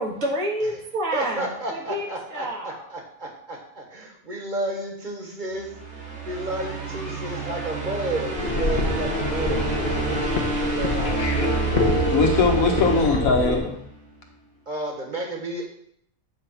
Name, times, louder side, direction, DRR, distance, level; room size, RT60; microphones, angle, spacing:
voice 1, 0.0-2.1 2.3-2.9, right 1 dB, 75° right, -2 dB, 2.2 m, -28 dB
voice 2, 1.1-5.7 6.0-10.2 10.6-11.8 12.8-13.1 14.7-15.6, right 2 dB, 35° right, 1 dB, 1.5 m, -32 dB
sound 1, 5.6-13.9, right 3 dB, 55° right, 1.8 m, -29 dB
sound 2, 8.4-13.6, left 2 dB, 45° left, 1.3 m, -25 dB
voice 3, 11.0-11.5 12.1-13.7, left 4 dB, 80° left, 2 dB, 1.7 m, -21 dB
8.7 x 3.8 x 5.7 m, 0.70 s
omnidirectional pair, 1.4 m